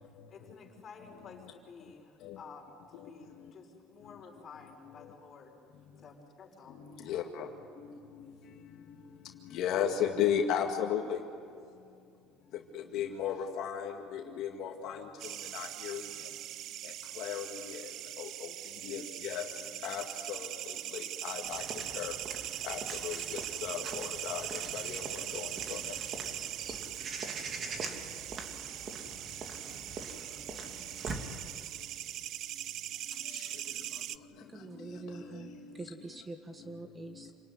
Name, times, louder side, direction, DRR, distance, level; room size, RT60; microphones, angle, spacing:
voice 1, 0.3-5.7 6.0-6.9, left 5 dB, 35° left, 0 dB, 5.5 m, -52 dB
voice 2, 7.1-7.5 9.5-11.2 12.9-13.9 14.4-14.9 15.5-16.0 17.2-17.4 18.9-19.4 19.8-20.0 20.3-20.5 21.2-21.6 22.0-22.1 22.7-23.1 23.6-23.8 24.2-24.4 24.7-25.0 25.3-25.4, left 9 dB, 60° left, 2 dB, 2.1 m, -33 dB
sound 1, 15.2-34.2, right 13 dB, 55° right, 0.6 m, -41 dB
Walk footsteps / Bird vocalization bird call bird song, 21.4-31.4, right 3 dB, 35° right, 2.9 m, -43 dB
voice 3, 34.5-37.3, right 3 dB, 15° right, 6 dB, 1.5 m, -45 dB
28.0 x 19.5 x 9.8 m, 2.5 s
cardioid pair, 135°, 0 cm